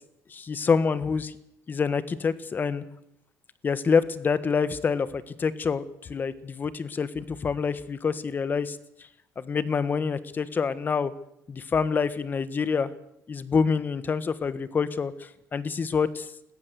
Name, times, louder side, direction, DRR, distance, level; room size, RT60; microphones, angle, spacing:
voice 1, 0.3-1.3 1.7-2.8 3.6-5.8 6.1-8.8 9.4-11.1 11.5-12.9 13.3-15.1 15.5-16.3, left 5 dB, 30° left, 15 dB, 1.4 m, -26 dB
21.0 x 15.5 x 8.1 m, 0.76 s
cardioid pair, 110°, 6 cm